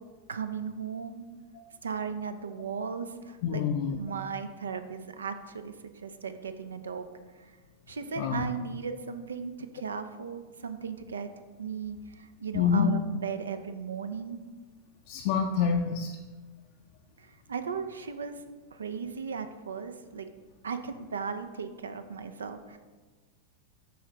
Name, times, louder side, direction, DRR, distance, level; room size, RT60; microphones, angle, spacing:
voice 1, 0.3-1.2 1.8-3.6 3.9-5.7 6.0-7.1 7.4-7.5 7.9-11.3 11.6-14.4 17.2-18.3 18.7-20.3 20.6-22.8, right 6 dB, 75° right, 10 dB, 0.3 m, -36 dB
voice 2, 3.4-4.0 8.2-8.4 12.5-12.9 15.1-16.1, left 7 dB, 50° left, 3 dB, 0.4 m, -26 dB
7.0 x 4.7 x 3.0 m, 1.3 s
figure-of-eight pair, 90°, 0 cm